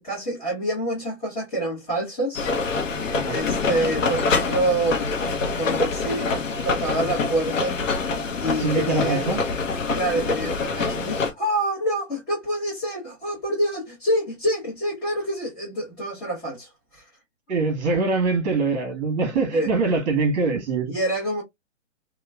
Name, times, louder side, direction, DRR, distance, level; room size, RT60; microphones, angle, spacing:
voice 1, 0.0-2.5 3.3-5.1 5.6-6.3 6.6-7.8 8.4-9.2 9.9-17.0 19.5-19.7 20.9-21.4, right 1 dB, 15° left, 1.0 m, -26 dB
sound 1, 2.3-11.3, left 4 dB, 80° left, 0.8 m, -25 dB
voice 2, 8.6-9.4 17.5-20.9, right 3 dB, 35° right, 1.2 m, -23 dB
2.9 x 2.3 x 2.2 m
hypercardioid pair, 145°, 38 cm